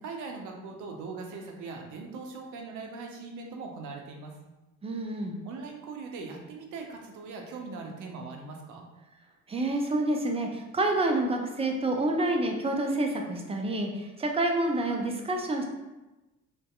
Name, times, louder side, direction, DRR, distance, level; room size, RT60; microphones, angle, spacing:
voice 1, 0.0-4.4 5.4-8.9, right 4 dB, 60° right, 2 dB, 0.6 m, -40 dB
voice 2, 4.8-5.4 9.5-15.6, right 2 dB, 20° right, 2 dB, 0.4 m, -28 dB
2.5 x 2.2 x 2.3 m, 1.1 s
hypercardioid pair, 60°, 35 cm